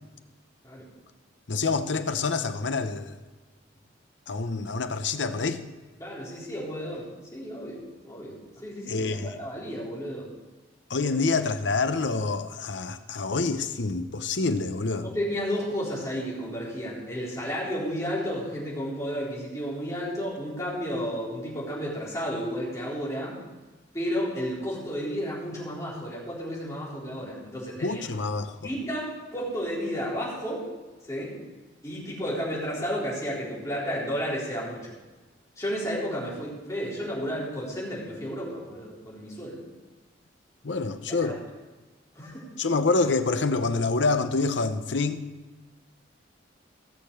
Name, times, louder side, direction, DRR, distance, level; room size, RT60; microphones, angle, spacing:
voice 1, 1.5-3.2 4.3-5.6 8.9-9.4 10.9-15.1 27.8-28.6 40.6-41.4 42.6-45.2, left 3 dB, 70° left, 0.8 m, -27 dB
voice 2, 6.0-9.1 9.4-10.3 11.0-11.1 15.0-23.4 23.9-28.0 28.6-30.7 31.1-31.4 31.8-34.9 35.6-39.7 41.1-41.4 42.2-42.6, equal, 15° left, 3.8 m, -32 dB
16.5 x 6.8 x 6.6 m
head